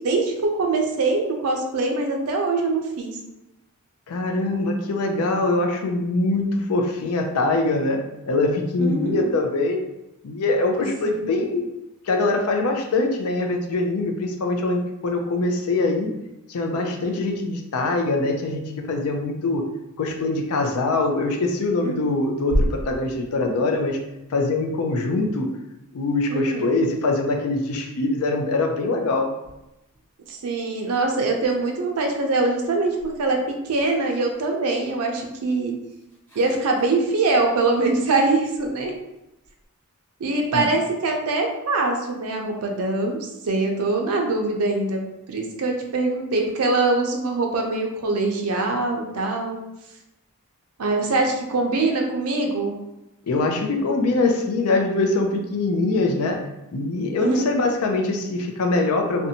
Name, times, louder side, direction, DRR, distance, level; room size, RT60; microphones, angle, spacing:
voice 1, 0.0-3.2 8.8-9.3 11.0-11.2 21.8-21.9 26.3-26.7 30.3-33.4 33.6-35.8 36.4-39.0 40.2-45.0 45.3-49.6 50.8-52.7 57.2-57.4, right 3 dB, 80° right, 2 dB, 0.5 m, -23 dB
voice 2, 4.1-9.8 10.2-11.7 12.0-16.1 16.5-19.7 20.0-24.0 24.3-25.5 25.9-29.4 40.5-40.7 53.2-56.4 56.7-59.3, left 2 dB, 75° left, 3 dB, 0.4 m, -23 dB
sound 1, 22.4-25.6 29.0-31.1 31.3-39.6, equal, 10° left, 1.2 m, -35 dB
2.6 x 2.1 x 2.7 m, 0.91 s
head